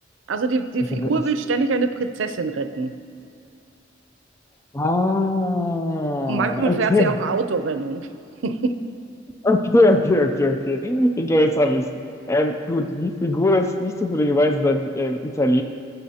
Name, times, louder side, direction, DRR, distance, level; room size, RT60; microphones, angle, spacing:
voice 1, 0.3-2.9 6.3-8.1 8.4-8.8, right 4 dB, 85° right, 10 dB, 0.5 m, -24 dB
voice 2, 4.7-7.1 9.4-11.9 12.3-15.6, left 1 dB, 15° left, 6 dB, 0.4 m, -20 dB
20.0 x 6.8 x 2.8 m, 2.6 s
head